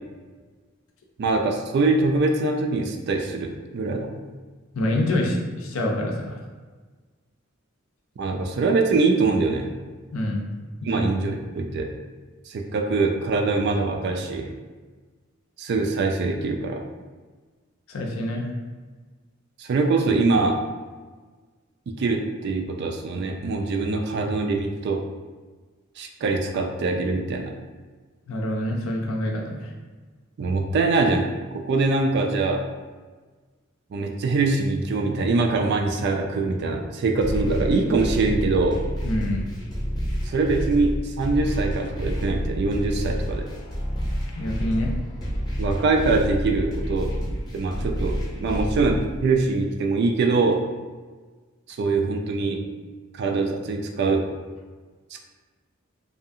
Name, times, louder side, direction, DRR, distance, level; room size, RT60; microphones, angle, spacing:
voice 1, 1.2-4.2 8.2-9.7 10.8-11.9 12.5-14.5 15.6-16.8 19.6-20.6 22.0-25.0 26.0-27.5 30.4-31.3 31.6-32.6 33.9-38.8 40.3-43.4 45.6-47.1 47.5-50.6 51.7-52.6 53.1-54.3 55.1-55.2, right 3 dB, 50° right, 3 dB, 0.3 m, -23 dB
voice 2, 4.7-6.4 10.1-10.4 10.8-11.1 17.9-18.5 28.3-29.7 39.0-39.4 44.3-44.9, left 1 dB, 75° left, 0 dB, 0.5 m, -26 dB
sound 1, 37.2-49.2, equal, 20° left, 0.6 m, -29 dB
2.6 x 2.4 x 2.5 m, 1.4 s
head